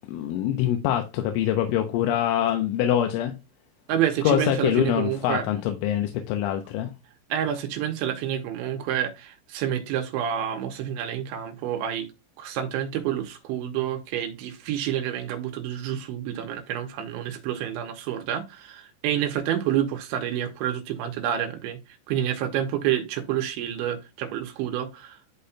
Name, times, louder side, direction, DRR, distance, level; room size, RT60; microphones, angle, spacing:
voice 1, 0.1-3.3 4.2-6.9, left 11 dB, 80° left, 3.1 m, -24 dB
voice 2, 3.9-5.5 7.3-12.1 12.4-21.8 22.1-25.2, right 10 dB, 80° right, 2.9 m, -28 dB
11.5 x 4.1 x 2.2 m
omnidirectional pair, 5.7 m